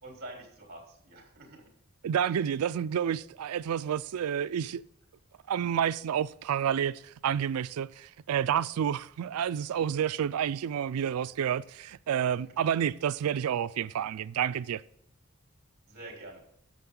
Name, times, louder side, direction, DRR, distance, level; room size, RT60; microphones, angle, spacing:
voice 1, 0.0-1.7 15.9-16.4, right 1 dB, 45° right, 3.4 m, -46 dB
voice 2, 2.0-4.8 5.5-14.8, right 8 dB, 85° right, 0.4 m, -29 dB
11.5 x 7.0 x 3.8 m
head